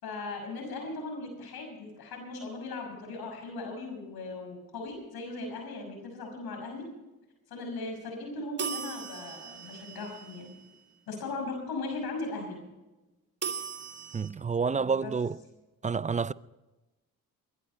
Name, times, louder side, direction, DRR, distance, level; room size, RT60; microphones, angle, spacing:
voice 1, 0.0-6.8 7.5-10.5 11.1-12.6 14.7-15.1, left 3 dB, 70° left, 5.8 m, -38 dB
sound 1, 8.6-10.8 13.4-14.3, right 6 dB, 40° right, 2.8 m, -38 dB
voice 2, 14.1-15.4 15.8-16.3, right 5 dB, 20° right, 0.4 m, -29 dB
22.5 x 11.0 x 4.3 m
supercardioid pair, 55°, 39 cm